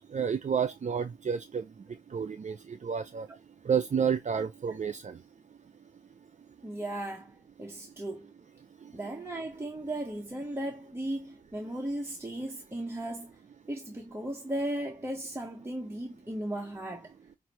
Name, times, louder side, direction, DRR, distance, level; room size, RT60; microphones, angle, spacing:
voice 1, 0.1-3.3 3.6-5.2 8.8-8.9, right 7 dB, 50° right, 0.5 m, -31 dB
voice 2, 6.6-8.3 8.9-13.3 13.7-17.1, right 1 dB, 15° right, 0.9 m, -36 dB
5.6 x 2.6 x 3.0 m
wide cardioid pair, 105°, 16 cm